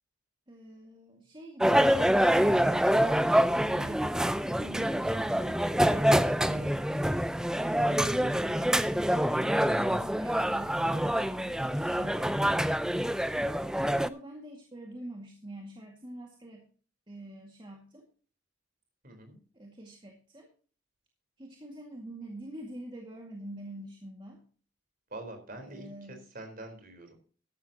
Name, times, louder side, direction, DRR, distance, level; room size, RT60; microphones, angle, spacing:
voice 1, 0.5-2.3 3.2-6.8 7.4-12.7 13.6-16.7 17.1-18.1 19.5-20.5 21.4-24.4 25.6-26.3, right 1 dB, 25° right, 0 dB, 2.0 m, -46 dB
sound 1, 1.6-14.1, equal, 5° right, 0.4 m, -26 dB
voice 2, 10.8-11.2 19.0-19.4 25.1-27.2, right 2 dB, 45° right, 5 dB, 4.2 m, -45 dB
14.0 x 11.5 x 2.9 m, 0.40 s
head